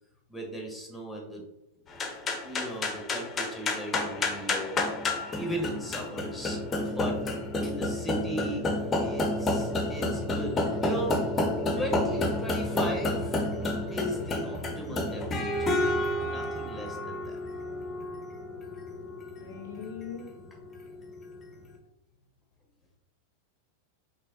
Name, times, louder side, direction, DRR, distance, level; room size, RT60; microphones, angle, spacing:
voice 1, 0.3-1.4 2.4-4.7 5.4-6.6 6.9-7.2 7.6-8.7 9.0-10.5 10.8-11.2 11.7-13.5 13.9-15.5 16.2-17.4, right 1 dB, ahead, 1.2 m, -37 dB
sound 1, 1.9-21.4, left 2 dB, 20° left, 0.7 m, -30 dB
voice 2, 19.4-20.4, left 7 dB, 55° left, 0.5 m, -41 dB
5.4 x 3.1 x 2.8 m
figure-of-eight pair, 90°, 0 cm